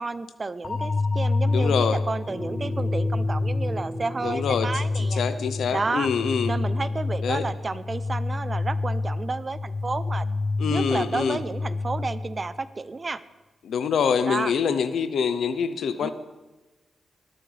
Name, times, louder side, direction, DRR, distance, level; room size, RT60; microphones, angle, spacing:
voice 1, 0.0-5.2 5.7-6.1 6.5-10.2 10.7-13.2 14.2-14.5 16.0-16.1, right 3 dB, 35° right, 14 dB, 0.7 m, -31 dB
sound 1, 0.6-12.6, left 3 dB, 45° left, 0.6 m, -28 dB
voice 2, 1.4-2.0 4.2-4.7 5.0-6.5 7.2-7.4 10.6-11.4 13.6-16.1, left 6 dB, 80° left, 12 dB, 0.8 m, -25 dB
sound 2, 2.3-7.2, right 1 dB, ahead, 1.9 m, -38 dB
20.0 x 11.5 x 3.4 m, 1.1 s
cardioid pair, 75°, 0 cm